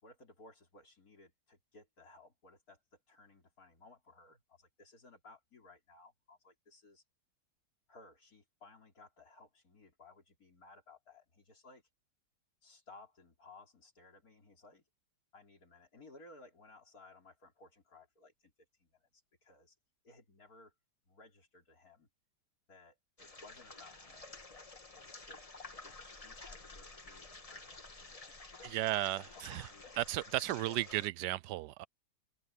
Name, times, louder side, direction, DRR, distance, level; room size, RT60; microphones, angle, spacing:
voice 1, 0.0-7.0 7.9-11.8 12.6-14.8 15.3-18.5 18.8-19.8 20.0-20.7 21.1-22.1 22.7-24.4 24.9-25.4 25.8-30.0, left 3 dB, 55° left, 4.1 m, -59 dB
sound 1, 23.2-31.1, left 3 dB, 20° left, 1.4 m, -51 dB
voice 2, 28.7-29.7 30.0-31.9, right 15 dB, 80° right, 1.1 m, -34 dB
open air
omnidirectional pair, 1.8 m